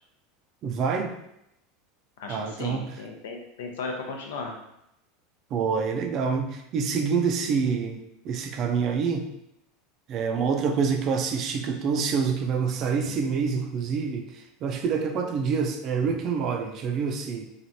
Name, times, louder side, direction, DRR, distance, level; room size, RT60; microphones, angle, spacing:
voice 1, 0.6-1.1 2.3-2.9 5.5-9.3 10.1-17.4, right 5 dB, 40° right, 5 dB, 0.4 m, -27 dB
voice 2, 2.2-4.6, left 4 dB, 90° left, 2 dB, 0.6 m, -36 dB
3.2 x 2.4 x 2.7 m, 0.80 s
supercardioid pair, 135°, 0 cm